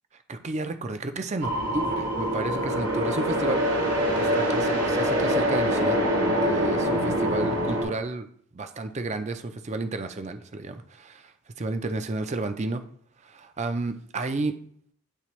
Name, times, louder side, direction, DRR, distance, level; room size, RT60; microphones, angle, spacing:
voice 1, 0.3-3.6 4.2-6.0 6.4-8.3 8.5-12.8 13.2-14.6, right 3 dB, 35° right, 9 dB, 0.4 m, -32 dB
sound 1, 1.4-7.8, equal, 75° right, 2.3 m, -24 dB
9.8 x 3.3 x 3.1 m, 0.62 s
head